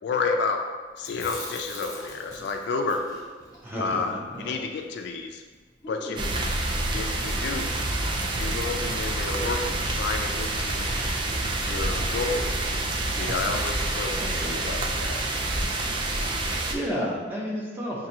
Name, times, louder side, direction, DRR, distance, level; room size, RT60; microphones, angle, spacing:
voice 1, 0.0-0.6 1.0-3.0 3.8-5.4 5.9-6.3 6.9-7.8 8.4-10.9 11.6-12.5 13.1-15.2, left 4 dB, 65° left, 4 dB, 0.3 m, -30 dB
Chewing mastication, 1.0-5.2 5.4-5.5 5.8-6.6, left 1 dB, 20° left, 1.0 m, -42 dB
voice 2, 3.6-4.0 4.3-4.5 14.2-14.5 16.2-18.1, equal, 10° right, -5 dB, 0.8 m, -32 dB
sound 1, 6.2-16.7, right 2 dB, 25° right, 0.3 m, -28 dB
5.8 x 2.6 x 2.8 m, 1.4 s
head